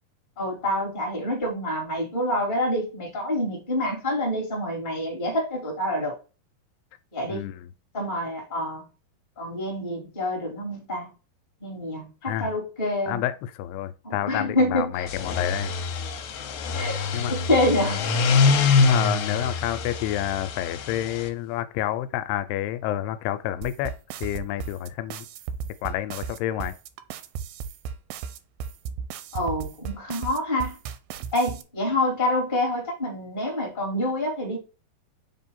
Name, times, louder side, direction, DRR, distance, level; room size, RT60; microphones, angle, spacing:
voice 1, 0.4-6.1 7.1-7.5 7.9-8.9 9.4-11.1 11.6-13.2 14.0-15.1 16.7-17.0 17.3-18.0 29.3-30.8 31.3-34.6, left 1 dB, 15° left, 1.9 m, -27 dB
voice 2, 7.3-7.7 12.2-12.5 13.1-15.8 17.1-17.3 18.7-23.9 24.2-25.3 25.8-26.8, left 13 dB, 85° left, 2.6 m, -29 dB
sound 1, 15.0-21.3, left 4 dB, 70° left, 2.3 m, -24 dB
sound 2, 23.6-31.6, right 7 dB, 80° right, 2.2 m, -35 dB
6.7 x 3.7 x 4.2 m
omnidirectional pair, 4.6 m